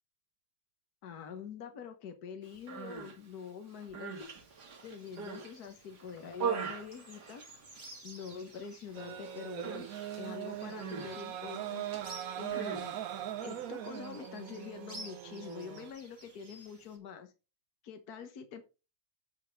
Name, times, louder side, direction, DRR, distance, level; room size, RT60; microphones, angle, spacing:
voice 1, 1.0-4.3 4.8-7.4 8.0-9.9 10.2-11.8 12.1-13.0 13.4-17.3 17.8-18.6, left 6 dB, 70° left, 6 dB, 1.7 m, -45 dB
Human voice, 2.5-3.2 3.7-5.5 6.0-8.0 8.2-8.7 8.9-9.2 9.6-13.3, right 6 dB, 85° right, 2.2 m, -41 dB
sound 1, 4.2-17.0, right 2 dB, 35° right, 3.0 m, -54 dB
sound 2, 8.9-15.9, right 11 dB, 65° right, 1.1 m, -41 dB
9.1 x 5.2 x 5.8 m, 0.31 s
omnidirectional pair, 1.7 m